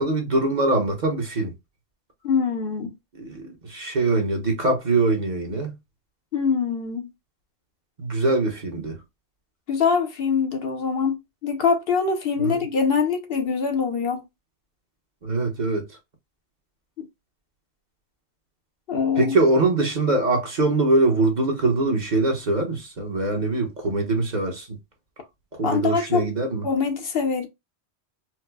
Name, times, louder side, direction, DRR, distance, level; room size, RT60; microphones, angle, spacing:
voice 1, 0.0-1.5 3.2-5.7 8.0-9.0 12.4-12.6 15.2-15.9 19.2-24.8 25.6-26.6, right 2 dB, 45° right, 1.0 m, -23 dB
voice 2, 2.2-2.9 6.3-7.1 9.7-11.2 11.4-14.2 17.0-17.1 18.9-19.4 25.6-26.3 26.6-27.5, left 5 dB, 60° left, 0.9 m, -23 dB
4.5 x 2.1 x 2.2 m
omnidirectional pair, 1.1 m